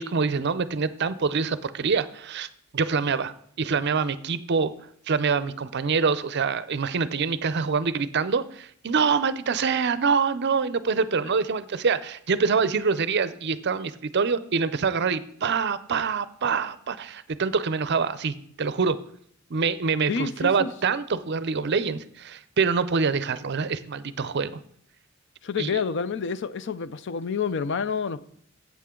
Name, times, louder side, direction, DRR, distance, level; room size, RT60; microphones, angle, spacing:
voice 1, 0.0-2.5 2.7-4.7 5.1-19.0 19.5-24.6 25.6-25.7, right 5 dB, 55° right, 0.5 m, -25 dB
voice 2, 20.1-20.7 25.4-28.2, left 5 dB, 60° left, 0.5 m, -28 dB
14.0 x 8.4 x 3.7 m
head